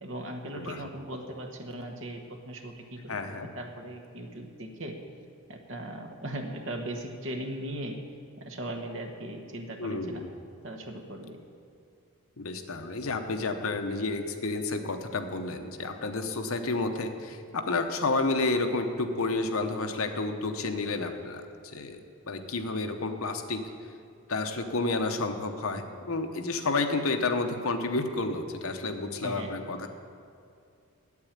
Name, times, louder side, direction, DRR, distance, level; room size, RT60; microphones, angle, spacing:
voice 1, 0.0-5.0 5.5-8.0 8.4-10.2 10.6-11.4 29.2-29.6, right 1 dB, 55° right, 3 dB, 1.2 m, -38 dB
voice 2, 3.1-3.5 9.8-10.3 12.4-23.6 24.3-29.9, left 3 dB, 70° left, 6 dB, 0.9 m, -30 dB
8.5 x 8.4 x 8.7 m, 2.4 s
head